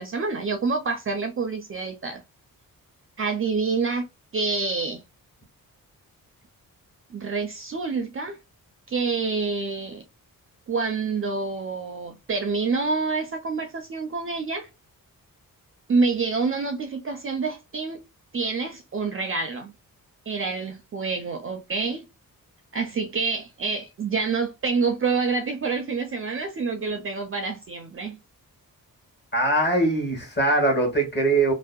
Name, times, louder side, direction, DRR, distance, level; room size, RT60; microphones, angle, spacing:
voice 1, 0.0-2.2 3.2-4.1 4.3-5.0 7.1-8.4 8.9-10.0 10.7-14.7 15.9-18.0 18.3-19.7 20.3-22.0 22.7-28.2, right 4 dB, 40° right, 0.4 m, -27 dB
voice 2, 29.3-31.5, right 2 dB, 30° left, 1.1 m, -21 dB
2.6 x 2.1 x 2.2 m
wide cardioid pair, 110°, 35 cm